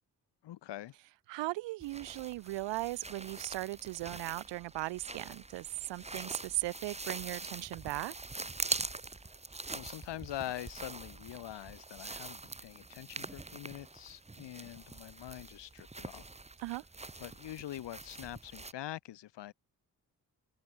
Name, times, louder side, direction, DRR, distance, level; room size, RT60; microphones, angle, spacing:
voice 1, 0.4-0.9 9.7-16.3 17.2-19.5, left 13 dB, 80° left, 1.4 m, -44 dB
voice 2, 1.3-8.1 16.6-16.8, right 19 dB, 90° right, 0.7 m, -38 dB
sound 1, 1.8-18.7, right 3 dB, 15° right, 1.0 m, -44 dB
open air
supercardioid pair, 45°, 42 cm